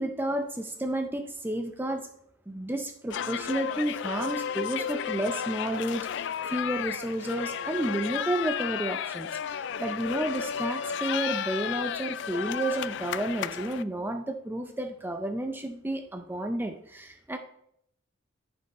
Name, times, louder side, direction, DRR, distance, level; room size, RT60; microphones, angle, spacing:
voice 1, 0.0-2.1 2.5-17.4, right 1 dB, 10° right, 5 dB, 0.4 m, -31 dB
sound 1, 3.1-13.8, left 8 dB, 60° left, 0.3 m, -33 dB
10.0 x 5.3 x 4.1 m, 0.73 s
head